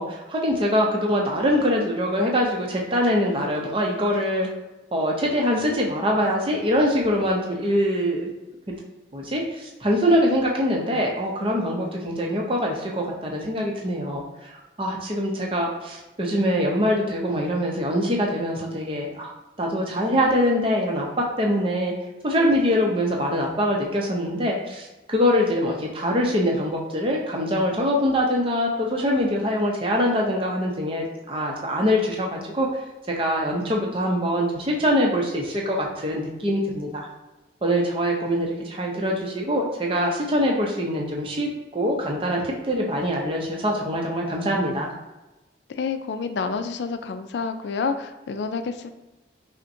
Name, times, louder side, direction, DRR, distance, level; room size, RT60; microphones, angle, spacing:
voice 1, 0.0-4.5 4.9-8.3 9.1-14.5 14.8-19.3 19.6-21.9 22.2-32.7 33.2-37.1 37.6-44.9, equal, 30° right, -1 dB, 0.6 m, -23 dB
voice 2, 45.7-48.9, left 5 dB, 70° left, 8 dB, 0.3 m, -28 dB
5.4 x 2.1 x 2.6 m, 1.1 s
head